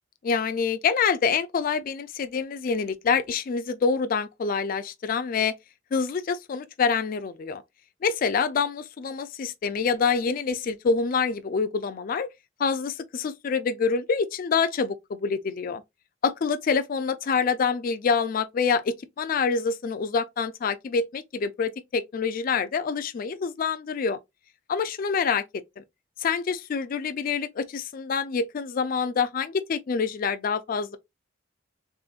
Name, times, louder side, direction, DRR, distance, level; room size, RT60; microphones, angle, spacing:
voice 1, 0.2-5.5 5.9-7.6 8.0-12.3 12.6-15.8 16.2-24.2 24.7-25.4 25.8-25.9 26.2-31.0, left 5 dB, 50° left, 0.4 m, -26 dB
3.7 x 3.4 x 2.4 m
head